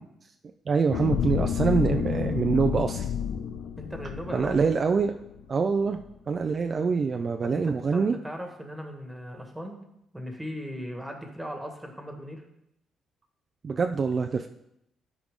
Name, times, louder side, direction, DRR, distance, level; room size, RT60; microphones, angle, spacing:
voice 1, 0.7-3.1 4.3-5.2 5.5-6.0 6.3-8.2 13.6-14.5, right 5 dB, 45° right, 5 dB, 0.5 m, -25 dB
sound 1, 0.9-5.4 5.9-6.0, left 8 dB, 85° left, 0.6 m, -30 dB
voice 2, 3.8-4.6 7.4-9.8 10.1-12.4, equal, 5° right, 3 dB, 1.7 m, -38 dB
12.5 x 4.8 x 3.7 m, 0.79 s
cardioid pair, 90°, 0 cm